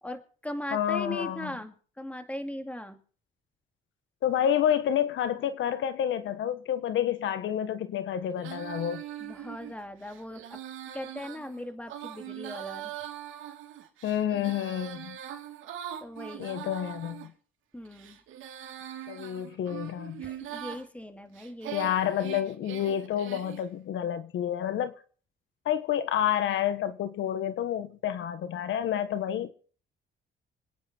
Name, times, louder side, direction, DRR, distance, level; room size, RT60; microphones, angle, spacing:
voice 1, 0.0-3.0 9.2-10.6 10.9-12.9 16.0-16.5 17.7-18.2 20.2-22.3, left 1 dB, 5° left, 2.6 m, -39 dB
voice 2, 0.7-1.5 4.2-9.0 14.0-15.2 16.4-17.3 19.1-20.2 21.7-24.9 25.6-29.5, left 10 dB, 75° left, 1.4 m, -29 dB
Female singing, 8.4-17.3 17.9-20.8 21.4-23.7, right 11 dB, 80° right, 2.9 m, -42 dB
25.5 x 9.7 x 4.5 m
cardioid pair, 90°, 20 cm